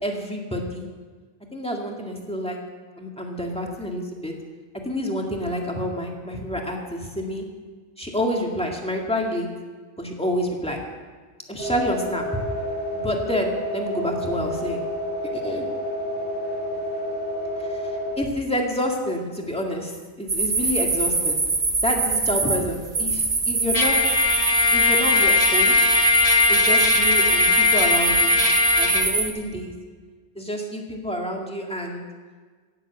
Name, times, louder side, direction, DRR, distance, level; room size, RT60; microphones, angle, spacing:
voice 1, 0.0-0.9 1.5-2.6 3.0-4.3 4.8-7.4 8.0-9.5 10.0-10.8 11.5-12.2 12.9-14.8 15.3-15.7 17.7-17.8 18.2-19.9 20.2-21.4 21.8-24.0 24.7-25.8 26.5-28.3 28.8-29.7 30.4-32.0, equal, 5° left, 0 dB, 2.1 m, -28 dB
sound 1, 11.6-18.2, equal, 55° right, 3.2 m, -29 dB
sound 2, 20.3-29.3, right 3 dB, 85° right, 2.2 m, -23 dB
Trumpet, 23.7-29.1, left 3 dB, 30° left, 1.7 m, -20 dB
17.0 x 7.7 x 8.1 m, 1.5 s
omnidirectional pair, 1.2 m